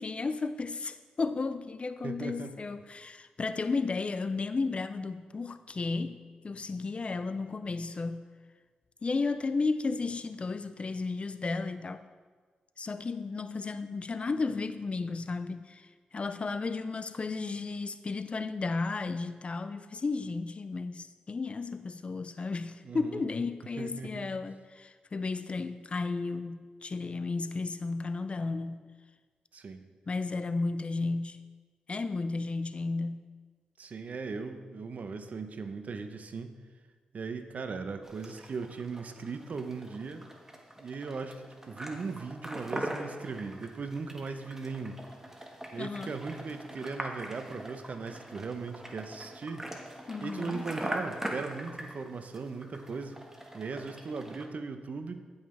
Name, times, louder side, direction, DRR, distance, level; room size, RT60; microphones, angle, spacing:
voice 1, 0.0-8.3 9.0-12.0 12.8-28.9 30.1-31.4 31.9-33.3 45.8-46.1 50.1-50.6, left 3 dB, 40° left, 12 dB, 0.4 m, -33 dB
voice 2, 2.0-2.6 22.8-23.3 23.8-24.3 29.5-29.8 33.8-36.5 37.1-40.3 40.8-45.0 45.7-49.7 50.2-53.2 53.5-55.2, right 4 dB, 60° right, 8 dB, 0.8 m, -38 dB
sound 1, 38.0-54.5, right 1 dB, 15° right, 1.4 m, -42 dB
15.5 x 5.6 x 3.3 m, 1.5 s
cardioid pair, 50°, 3 cm